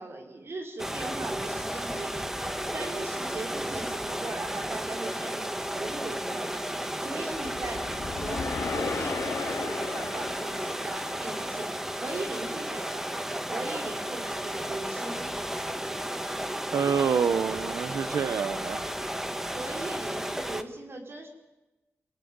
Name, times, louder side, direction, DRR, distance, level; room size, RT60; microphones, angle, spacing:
voice 1, 0.0-2.3 2.7-7.9 8.2-11.7 12.0-13.1 13.5-15.2 19.5-21.3, right 2 dB, 50° right, 3 dB, 4.9 m, -39 dB
sound 1, 0.8-20.6, equal, 10° right, 1.5 m, -33 dB
sound 2, 7.3-11.6, left 5 dB, 65° left, 2.8 m, -36 dB
voice 2, 16.7-18.8, right 6 dB, 85° right, 11 dB, 0.9 m, -27 dB
26.0 x 17.0 x 9.6 m, 1.0 s
wide cardioid pair, 115°, 5 cm